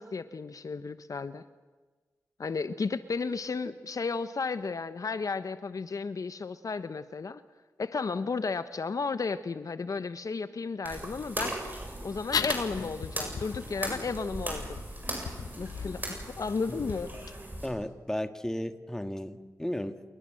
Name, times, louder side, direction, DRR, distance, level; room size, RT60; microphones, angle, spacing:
voice 1, 0.0-1.4 2.4-7.4 7.8-11.5 12.0-14.8 15.6-17.1, left 4 dB, 65° left, 12 dB, 1.0 m, -33 dB
sound 1, 10.8-17.7, right 1 dB, 30° right, 7.9 m, -38 dB
sound 2, 12.3-17.3, left 6 dB, 85° left, 1.1 m, -38 dB
voice 2, 17.6-20.0, left 1 dB, 10° left, 9 dB, 1.8 m, -34 dB
27.5 x 21.5 x 7.7 m, 1.3 s
cardioid pair, 55°, 6 cm